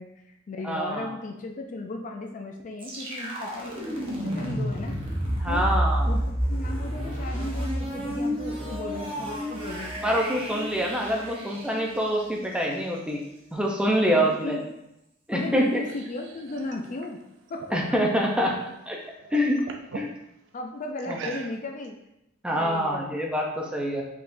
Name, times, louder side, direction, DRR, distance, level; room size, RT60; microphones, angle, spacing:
voice 1, 0.0-5.0 5.5-5.7 6.1-10.2 14.1-14.7 15.3-17.2 17.5-17.8 20.5-22.0 22.5-23.2, left 2 dB, 40° left, 3 dB, 0.4 m, -36 dB
voice 2, 0.6-1.1 5.4-6.1 10.0-13.2 13.5-14.6 15.3-15.8 17.7-18.6 18.9-19.0 19.3-19.6 19.9-20.1 21.1-21.2 22.4-24.0, equal, 5° right, -1 dB, 0.6 m, -25 dB
sound 1, 2.8-12.6, equal, 30° right, 0.9 m, -30 dB
sound 2, 15.4-18.7 19.1-20.1 21.0-21.9, right 4 dB, 65° right, 0.4 m, -42 dB
4.7 x 3.7 x 2.6 m, 0.83 s
head